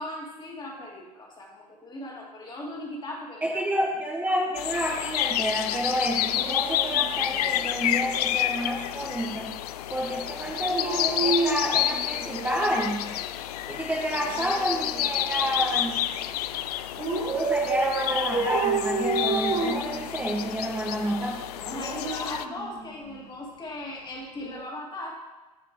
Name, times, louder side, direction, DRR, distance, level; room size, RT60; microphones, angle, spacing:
voice 1, 0.0-3.6 21.6-25.2, left 1 dB, 20° left, -1 dB, 2.4 m, -38 dB
voice 2, 3.4-9.5 9.9-13.1 13.7-16.1 17.3-21.4, equal, 10° right, -3 dB, 1.2 m, -29 dB
sound 1, 4.6-22.5, left 12 dB, 70° left, 0.4 m, -30 dB
Dog, 6.2-8.0 10.5-12.9 14.2-15.8 17.0-20.5 21.5-23.2 24.4-24.6, right 3 dB, 30° right, 2.0 m, -31 dB
15.0 x 5.1 x 3.1 m, 1.2 s
hypercardioid pair, 90°, 21 cm